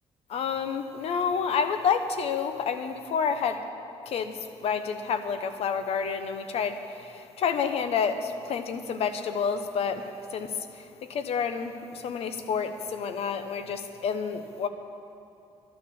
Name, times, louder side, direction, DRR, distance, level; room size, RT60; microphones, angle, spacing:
voice 1, 0.3-3.6 4.1-4.3 4.6-14.7, left 6 dB, 70° left, 9 dB, 0.9 m, -29 dB
11.5 x 10.0 x 7.0 m, 2.7 s
cardioid pair, 110°, 11 cm